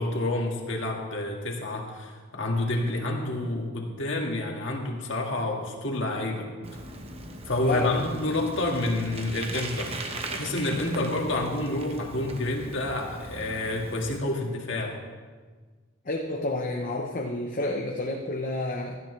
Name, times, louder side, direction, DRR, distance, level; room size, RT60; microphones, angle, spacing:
voice 1, 0.0-6.5 7.5-10.0 10.3-15.0, left 2 dB, 55° left, 0 dB, 1.9 m, -29 dB
Bicycle, 6.6-14.2, right 2 dB, 25° right, 1.0 m, -39 dB
voice 2, 7.6-8.2 11.0-11.1 16.0-19.0, left 2 dB, 40° left, 1 dB, 0.8 m, -30 dB
17.0 x 13.5 x 3.3 m, 1.4 s
head